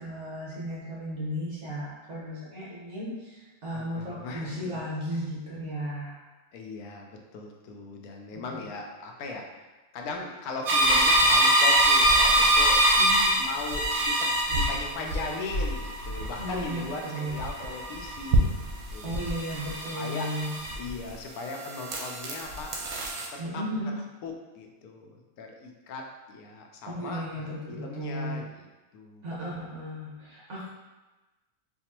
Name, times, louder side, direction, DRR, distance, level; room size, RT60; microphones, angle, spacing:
voice 1, 0.0-6.2 8.5-8.6 13.0-13.4 16.4-17.4 19.0-20.5 23.4-24.0 26.8-28.4 29.2-30.7, equal, 55° right, -7 dB, 1.3 m, -35 dB
voice 2, 3.7-4.6 5.1-5.2 6.5-13.0 13.4-18.6 18.9-19.3 20.0-20.3 20.8-22.7 23.3-23.6 23.9-28.7 28.9-29.3, left 3 dB, 85° left, 1 dB, 1.1 m, -39 dB
sound 1, 10.7-21.1 21.5-23.3, right 1 dB, 85° right, 1.1 m, -25 dB
sound 2, 10.8-15.2 15.5-17.0, left 1 dB, 60° left, 0.9 m, -38 dB
4.3 x 2.4 x 2.9 m, 1.1 s
omnidirectional pair, 1.5 m